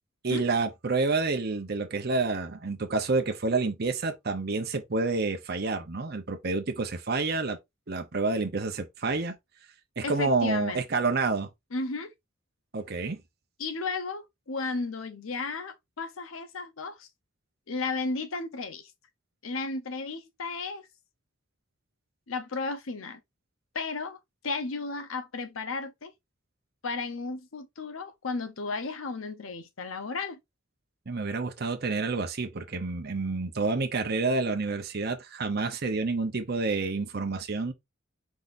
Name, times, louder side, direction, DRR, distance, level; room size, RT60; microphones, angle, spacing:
voice 1, 0.2-7.6 7.9-9.4 10.0-11.5 12.7-13.2 31.1-37.7, right 3 dB, 50° right, 0.8 m, -28 dB
voice 2, 10.0-10.8 11.7-12.1 13.6-17.1 17.7-18.9 19.4-20.9 22.3-23.2 23.7-24.2 24.4-26.1 26.8-30.4, left 3 dB, 90° left, 0.8 m, -34 dB
4.8 x 4.0 x 2.6 m
head